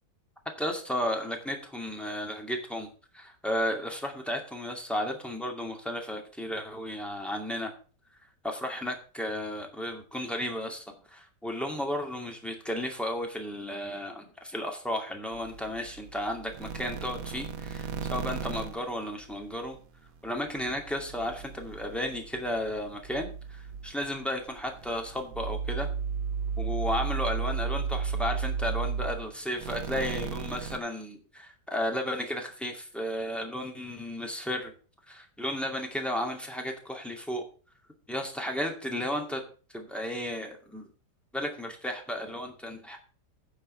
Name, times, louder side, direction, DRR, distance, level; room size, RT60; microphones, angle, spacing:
voice 1, 0.6-2.9 3.1-7.7 8.4-10.8 11.1-19.8 20.2-25.9 26.6-34.7 35.1-37.4 38.1-39.4 39.7-40.8 41.3-43.0, left 1 dB, ahead, 2 dB, 2.2 m, -33 dB
sound 1, 15.3-19.8 20.1-30.8, right 6 dB, 60° right, 1.2 m, -35 dB
10.0 x 5.6 x 6.9 m, 0.38 s
omnidirectional pair, 1.8 m